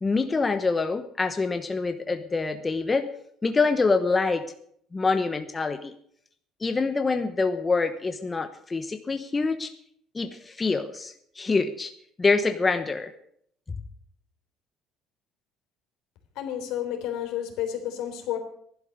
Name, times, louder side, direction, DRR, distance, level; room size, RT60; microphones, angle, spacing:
voice 1, 0.0-3.1 3.4-4.4 4.9-5.9 6.6-9.7 10.1-11.9 12.2-13.1, left 4 dB, 20° left, 8 dB, 0.9 m, -25 dB
voice 2, 16.4-18.4, left 10 dB, 80° left, 4 dB, 3.7 m, -31 dB
16.0 x 11.5 x 6.5 m, 0.67 s
cardioid pair, 130°, 0 cm